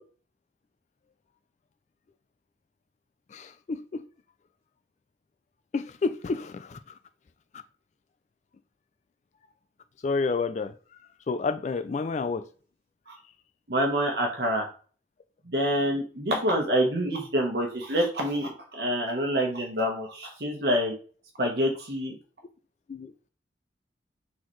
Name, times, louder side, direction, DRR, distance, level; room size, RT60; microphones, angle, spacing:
voice 1, 3.3-4.1 5.7-6.8 10.0-10.7 11.3-12.5 22.9-23.1, left 4 dB, 40° left, 0.3 m, -29 dB
voice 2, 13.7-14.7 15.5-20.9 21.4-22.1, equal, 65° right, 1.1 m, -27 dB
4.2 x 4.0 x 3.2 m
head